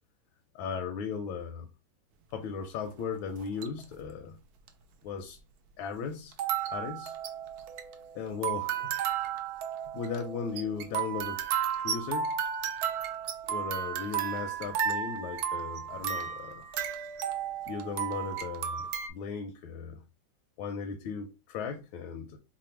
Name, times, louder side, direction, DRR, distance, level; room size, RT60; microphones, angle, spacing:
voice 1, 0.5-1.7 2.3-4.4 5.0-5.4 5.8-6.4 6.7-7.2 8.1-8.9 9.9-11.4 11.8-12.3 13.5-16.7 17.6-20.0 20.6-22.4, left 6 dB, 85° left, 1.4 m, -37 dB
sound 1, 3.4-3.8 4.7-4.8 6.3-19.1, right 8 dB, 75° right, 0.9 m, -33 dB
3.3 x 2.2 x 4.3 m
omnidirectional pair, 2.1 m